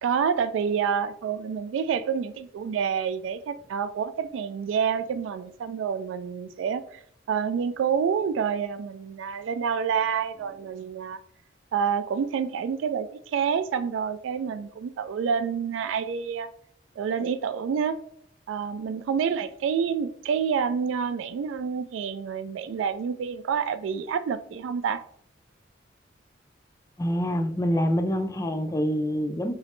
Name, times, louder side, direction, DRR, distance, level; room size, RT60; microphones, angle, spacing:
voice 1, 0.0-7.0 7.3-11.2 11.7-16.5 17.0-18.0 18.5-25.0, right 7 dB, 80° right, 12 dB, 0.3 m, -28 dB
voice 2, 27.0-29.5, equal, 15° left, 7 dB, 0.4 m, -26 dB
3.8 x 3.1 x 3.0 m, 0.65 s
head